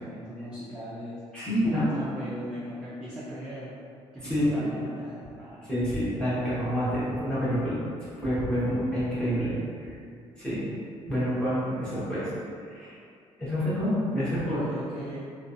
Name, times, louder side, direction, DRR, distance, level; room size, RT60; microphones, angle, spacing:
voice 1, 0.0-1.2 1.6-3.7 4.1-5.7 6.9-7.2 14.4-15.2, equal, 10° right, -9 dB, 0.3 m, -39 dB
voice 2, 1.3-2.1 4.3-4.7 5.7-7.8 8.2-9.5 9.8-9.9 10.4-10.6 11.1-12.3 12.6-13.0 13.4-14.6, equal, 10° left, -12 dB, 0.8 m, -27 dB
2.6 x 2.2 x 2.5 m, 2.3 s
cardioid pair, 170°, 11 cm